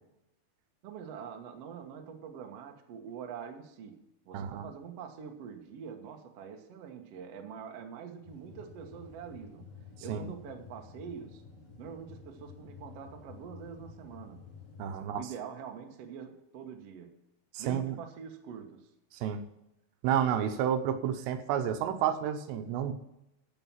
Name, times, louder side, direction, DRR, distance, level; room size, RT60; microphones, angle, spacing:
voice 1, 0.8-9.7 10.0-11.4 11.8-14.5 15.0-17.2 17.6-18.9, right 7 dB, 75° right, 4 dB, 1.4 m, -45 dB
voice 2, 4.3-4.7 10.1-10.3 14.8-15.2 17.5-18.0 19.1-19.4 20.0-22.9, right 9 dB, 90° right, 8 dB, 3.1 m, -30 dB
sound 1, 8.2-15.0, left 5 dB, 40° left, 5.3 m, -51 dB
14.5 x 5.8 x 7.3 m, 0.86 s
omnidirectional pair, 4.8 m